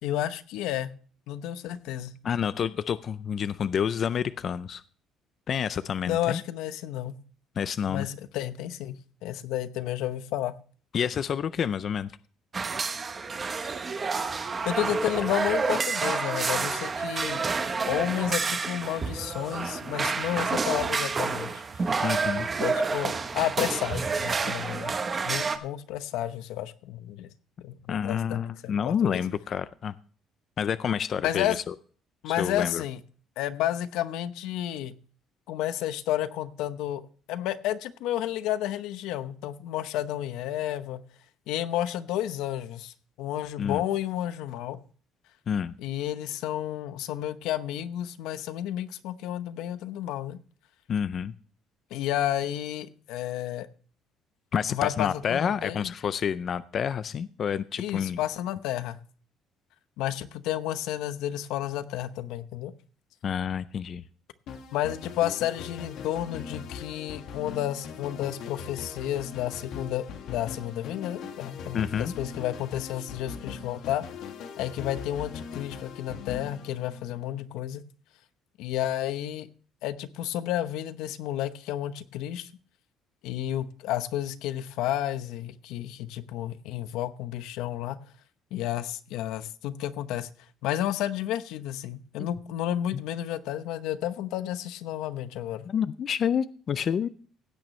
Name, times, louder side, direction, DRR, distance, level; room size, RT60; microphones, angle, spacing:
voice 1, 0.0-0.9 1.3-2.1 6.1-7.1 7.9-8.9 9.2-10.5 14.7-17.4 17.8-21.9 22.6-24.9 25.2-27.3 27.6-29.2 31.2-31.6 32.2-33.0 33.4-34.9 35.5-37.0 37.3-41.0 41.5-44.8 45.8-50.4 51.9-53.7 54.7-55.9 57.8-59.0 60.0-62.7 64.7-74.0 74.6-77.8 78.6-79.5 79.8-82.5 83.2-88.0 88.5-90.3 90.6-95.7, left 12 dB, 85° left, 12 dB, 0.8 m, -31 dB
voice 2, 2.2-4.8 5.5-6.4 7.6-8.1 10.9-12.1 22.0-22.5 27.9-29.9 30.6-31.7 32.3-32.8 43.6-43.8 45.5-45.7 50.9-51.3 54.5-58.2 63.2-64.0 71.7-72.1 92.9-93.0 95.6-97.1, left 8 dB, 35° left, 15 dB, 0.4 m, -28 dB
sound 1, 12.5-25.6, right 4 dB, 25° right, 0.9 m, -29 dB
sound 2, 64.5-77.4, left 6 dB, 60° left, 1.7 m, -41 dB
16.5 x 9.1 x 3.2 m, 0.43 s
cardioid pair, 170°, 0 cm